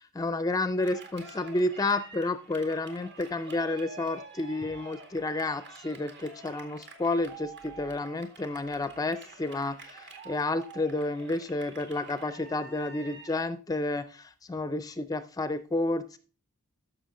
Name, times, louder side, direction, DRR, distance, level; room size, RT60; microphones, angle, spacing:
voice 1, 0.1-16.2, left 2 dB, 15° left, 12 dB, 0.4 m, -31 dB
Cheering, 0.8-13.4, right 4 dB, 50° right, 2.0 m, -48 dB
13.5 x 6.1 x 3.8 m, 0.37 s
head